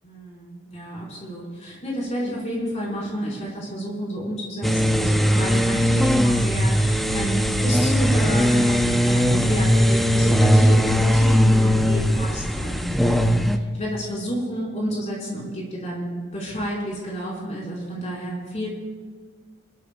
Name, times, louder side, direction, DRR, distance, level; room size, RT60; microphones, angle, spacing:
voice 1, 0.0-13.4 13.7-18.7, equal, 35° left, -5 dB, 4.9 m, -30 dB
sound 1, 4.6-13.6, equal, ahead, 0.6 m, -19 dB
28.5 x 13.5 x 2.3 m, 1.5 s
head